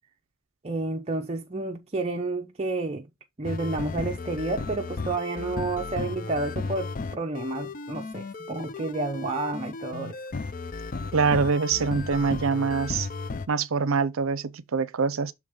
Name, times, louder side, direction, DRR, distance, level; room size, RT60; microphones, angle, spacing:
voice 1, 0.6-3.1 3.4-10.2, right 2 dB, 30° right, 0.6 m, -30 dB
sound 1, 3.4-13.5, left 3 dB, 40° left, 0.5 m, -35 dB
voice 2, 11.1-13.1 13.5-15.3, right 5 dB, 75° right, 0.6 m, -24 dB
7.1 x 3.4 x 4.9 m
head